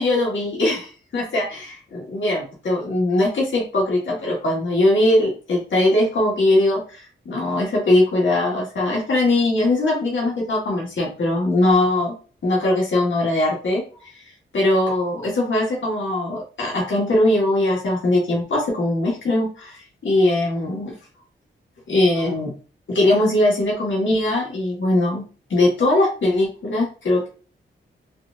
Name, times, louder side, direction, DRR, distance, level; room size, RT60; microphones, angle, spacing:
voice 1, 0.0-12.1 12.4-14.1 14.5-21.0 21.9-22.5 22.9-25.2 25.5-27.3, left 1 dB, 65° left, -3 dB, 1.4 m, -20 dB
4.3 x 2.4 x 2.5 m, 0.37 s
cardioid pair, 85°, 21 cm